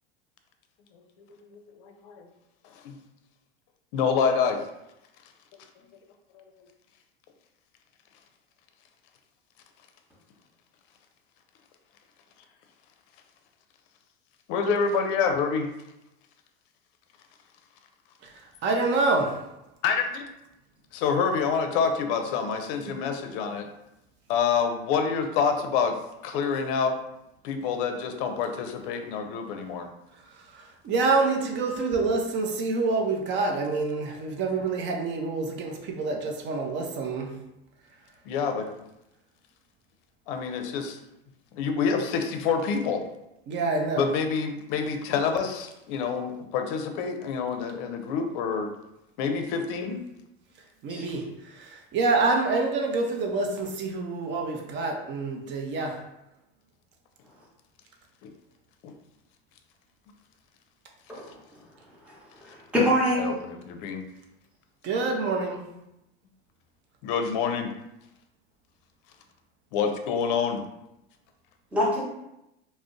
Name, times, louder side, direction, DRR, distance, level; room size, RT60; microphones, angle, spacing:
voice 1, 1.4-2.3 2.8-3.0 3.9-4.6 6.3-6.4 14.5-15.7 19.8-20.2 20.9-23.7 24.3-26.0 26.2-27.0 27.4-29.9 38.3-38.7 40.3-41.0 41.5-43.0 44.0-48.7 49.2-50.0 58.2-58.3 58.8-58.9 63.2-64.0 67.0-67.7 69.7-70.6, left 6 dB, 60° left, 6 dB, 0.5 m, -27 dB
voice 2, 18.6-19.4 30.5-37.3 43.5-44.1 50.8-56.0 64.8-65.6, right 3 dB, 40° right, 2 dB, 0.6 m, -27 dB
voice 3, 62.4-63.3 63.6-63.7 71.7-72.0, equal, 5° right, -6 dB, 0.8 m, -25 dB
2.5 x 2.0 x 3.7 m, 0.88 s
supercardioid pair, 110°, 30 cm